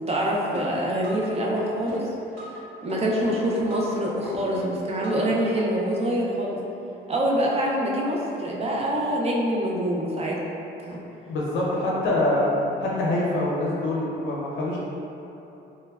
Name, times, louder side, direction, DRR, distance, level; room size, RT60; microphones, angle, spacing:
voice 1, 0.1-2.1 2.8-6.6 7.1-10.4 10.8-11.0, equal, 30° right, -3 dB, 0.4 m, -25 dB
sound 1, 0.5-1.3 1.6-2.6 2.9-3.9 4.2-5.3 5.6-5.7, equal, 80° right, 0.9 m, -38 dB
voice 2, 11.3-12.5 12.8-14.8, left 1 dB, 80° left, -5 dB, 0.6 m, -25 dB
3.1 x 2.1 x 2.3 m, 2.9 s
cardioid pair, 90°, 20 cm